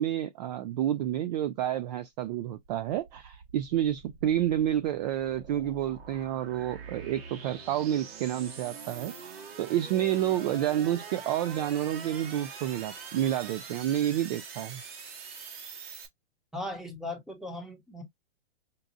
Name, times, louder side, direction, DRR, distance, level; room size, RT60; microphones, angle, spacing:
voice 1, 0.0-14.8, right 11 dB, 40° right, 0.4 m, -29 dB
sound 1, 2.6-16.1, right 5 dB, 60° right, 1.7 m, -44 dB
voice 2, 16.5-18.0, left 1 dB, ahead, 1.0 m, -38 dB
5.2 x 2.3 x 2.6 m
hypercardioid pair, 145°, 34 cm